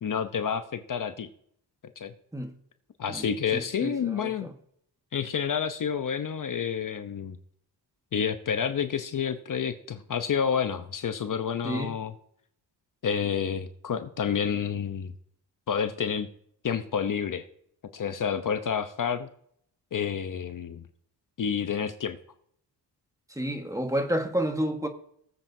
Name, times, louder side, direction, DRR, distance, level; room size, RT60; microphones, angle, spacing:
voice 1, 0.0-1.3 2.0-2.1 3.0-4.5 5.1-7.4 8.1-12.1 13.0-15.1 15.7-16.3 16.6-17.4 17.9-19.3 19.9-20.9 21.4-22.2, left 7 dB, 50° left, 0.8 m, -29 dB
voice 2, 3.5-4.5 11.6-11.9 23.3-24.9, right 1 dB, 5° right, 1.4 m, -30 dB
19.5 x 7.5 x 2.7 m
cardioid pair, 85°, 43 cm